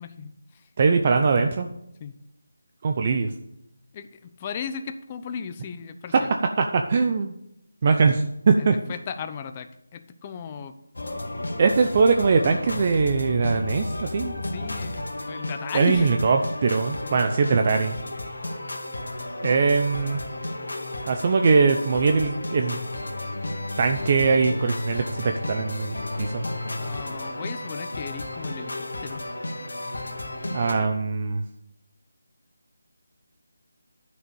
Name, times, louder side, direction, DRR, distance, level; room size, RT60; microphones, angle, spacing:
voice 1, 0.0-0.7 2.0-2.2 3.9-6.3 8.6-10.8 14.4-16.1 17.0-17.2 26.8-29.2, left 7 dB, 25° left, 9 dB, 0.7 m, -36 dB
voice 2, 0.8-1.7 2.8-3.3 6.1-6.2 6.6-7.4 7.8-8.8 11.6-14.3 15.7-18.0 19.4-20.2 21.1-22.8 23.8-26.5 30.5-31.4, right 4 dB, 35° right, 5 dB, 0.7 m, -21 dB
sound 1, 11.0-30.7, left 2 dB, 75° left, 2.2 m, -33 dB
11.0 x 6.4 x 7.0 m, 0.81 s
figure-of-eight pair, 165°, 0 cm